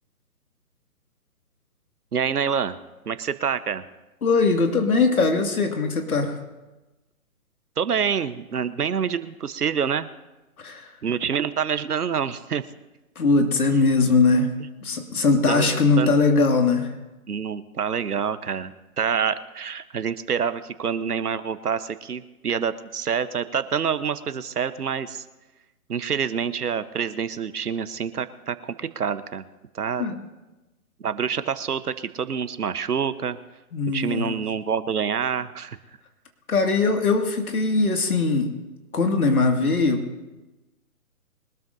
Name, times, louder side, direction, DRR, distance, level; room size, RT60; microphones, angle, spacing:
voice 1, 2.1-2.8 3.1-3.8 7.8-10.1 11.0-12.6 15.5-16.1 17.3-18.7 19.0-25.2 25.9-29.4 29.7-30.1 31.0-33.4 33.9-35.8, right 7 dB, 85° right, 13 dB, 1.1 m, -27 dB
voice 2, 4.2-6.4 10.6-10.9 13.2-14.5 14.8-16.9 30.0-30.2 33.7-34.4 36.5-38.5 38.9-40.0, left 3 dB, 75° left, 4 dB, 2.2 m, -21 dB
23.0 x 12.5 x 2.7 m, 1.1 s
hypercardioid pair, 150°, 44 cm